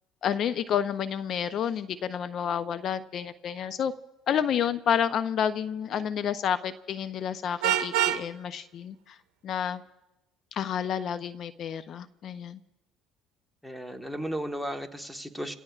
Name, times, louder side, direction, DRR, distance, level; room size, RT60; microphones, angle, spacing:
voice 1, 0.2-3.9 4.3-9.2 9.4-9.8 10.5-12.6, left 8 dB, 55° left, 13 dB, 0.6 m, -30 dB
Vehicle horn car horn honking, 7.6-8.2, right 12 dB, 80° right, 0.8 m, -25 dB
voice 2, 13.6-15.6, equal, ahead, 6 dB, 1.3 m, -35 dB
29.5 x 17.0 x 2.4 m, 0.94 s
supercardioid pair, 85°, 0 cm